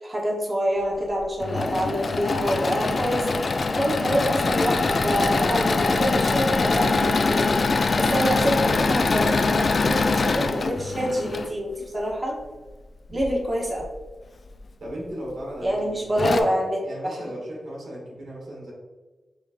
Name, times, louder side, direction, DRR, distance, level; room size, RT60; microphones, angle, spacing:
voice 1, 0.0-3.4 3.7-7.5 8.0-12.4 13.1-13.9 15.6-17.3, equal, 30° right, -2 dB, 1.1 m, -26 dB
Engine / Mechanisms, 1.2-11.5 13.1-13.8 14.5-14.6 14.9-15.0 15.8-15.9 16.2-16.4, left 3 dB, 50° left, 0.3 m, -23 dB
voice 2, 14.8-16.5 16.8-18.7, equal, 80° right, -4 dB, 1.5 m, -36 dB
6.2 x 3.0 x 2.5 m, 1.3 s
wide cardioid pair, 90°, 0 cm